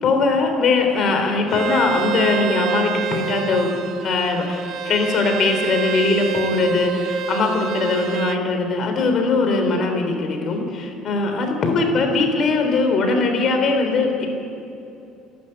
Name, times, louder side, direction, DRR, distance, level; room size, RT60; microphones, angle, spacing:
voice 1, 0.0-3.7 4.0-14.3, left 3 dB, 35° left, 4 dB, 3.6 m, -20 dB
Bowed string instrument, 1.5-8.4, right 9 dB, 40° right, 0.8 m, -27 dB
30.0 x 12.0 x 8.9 m, 2.8 s
cardioid pair, 180°, 0 cm